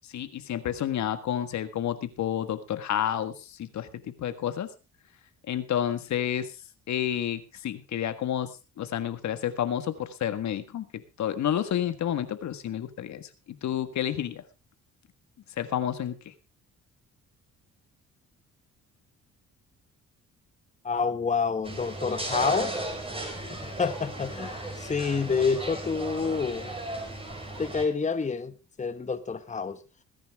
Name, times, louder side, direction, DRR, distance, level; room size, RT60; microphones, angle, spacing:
voice 1, 0.1-4.7 5.5-6.6 6.9-8.5 8.8-14.4 15.6-16.3, left 10 dB, 65° left, 1.6 m, -30 dB
voice 2, 20.8-22.8 23.5-26.8 27.6-29.8, left 5 dB, 25° left, 1.3 m, -28 dB
sound 1, 21.6-27.8, right 1 dB, 20° right, 5.0 m, -35 dB
21.0 x 10.5 x 3.5 m
cardioid pair, 90°, 30 cm